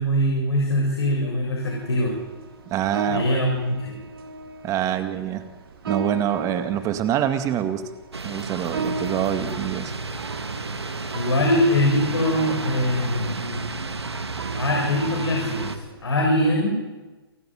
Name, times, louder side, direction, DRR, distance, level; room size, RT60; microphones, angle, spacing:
voice 1, 0.0-2.1 3.1-4.0 11.1-13.6 14.6-16.8, left 1 dB, 75° left, 0 dB, 7.0 m, -23 dB
sound 1, 1.6-16.3, right 3 dB, 65° right, 3.6 m, -37 dB
voice 2, 2.7-3.4 4.6-5.4 5.9-7.8 8.2-9.9, right 11 dB, 25° right, 8 dB, 2.2 m, -25 dB
sound 2, 8.1-15.8, right 3 dB, 85° right, 2.1 m, -31 dB
28.5 x 14.0 x 9.4 m, 1.2 s
figure-of-eight pair, 125°, 13 cm